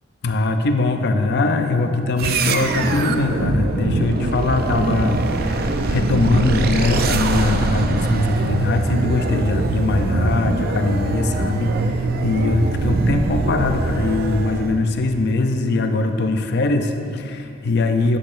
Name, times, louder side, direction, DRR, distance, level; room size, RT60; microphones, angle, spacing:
voice 1, 0.2-18.2, left 2 dB, 55° left, 6 dB, 0.5 m, -21 dB
sound 1, 2.2-14.8, right 2 dB, 50° right, 0.4 m, -22 dB
10.0 x 8.7 x 2.5 m, 2.4 s
head